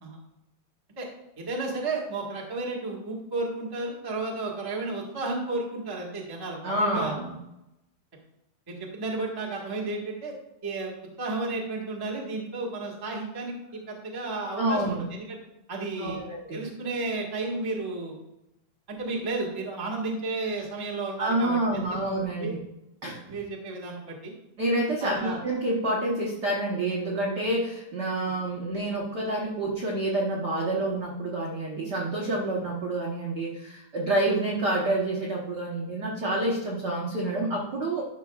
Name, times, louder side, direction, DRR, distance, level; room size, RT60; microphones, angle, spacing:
voice 1, 1.4-7.1 8.7-10.3 10.6-13.5 13.9-15.4 15.7-16.2 16.5-18.1 18.9-22.0 22.4-22.5 23.3-24.3 25.0-25.4, right 3 dB, 20° right, -3 dB, 0.5 m, -32 dB
voice 2, 6.6-7.3 14.6-15.0 16.0-16.6 21.2-22.6 23.0-23.2 24.6-38.0, right 1 dB, 65° right, -3 dB, 1.0 m, -28 dB
12.0 x 5.8 x 2.4 m, 0.90 s
omnidirectional pair, 3.4 m